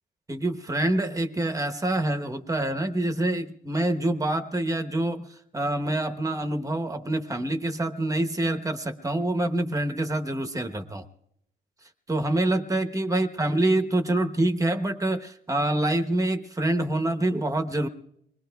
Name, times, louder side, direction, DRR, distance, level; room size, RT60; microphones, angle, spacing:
voice 1, 0.3-11.0 12.1-17.9, right 1 dB, 15° right, 6 dB, 1.0 m, -26 dB
25.0 x 21.0 x 2.3 m, 0.76 s
cardioid pair, 90°, 20 cm